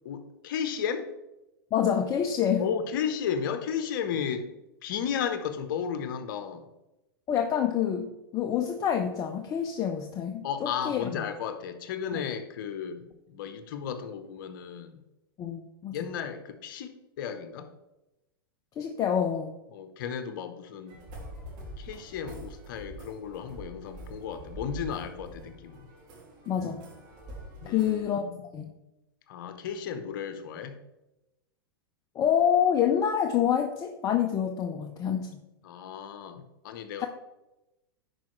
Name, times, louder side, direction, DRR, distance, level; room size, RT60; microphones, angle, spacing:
voice 1, 0.0-1.1 2.6-4.5 4.8-6.7 10.4-15.0 15.9-17.7 19.7-21.0 21.8-25.9 27.6-28.4 29.3-30.8 35.6-37.1, left 7 dB, 60° left, 9 dB, 0.9 m, -34 dB
voice 2, 1.7-2.6 7.3-11.0 15.4-15.9 18.8-19.5 26.5-26.8 27.7-28.3 28.5-28.7 32.2-35.3 37.0-37.1, left 9 dB, 30° left, 5 dB, 0.6 m, -27 dB
sound 1, 20.9-28.0, right 1 dB, 50° right, 2.5 m, -45 dB
10.5 x 4.8 x 3.2 m, 0.96 s
hypercardioid pair, 110°, 12 cm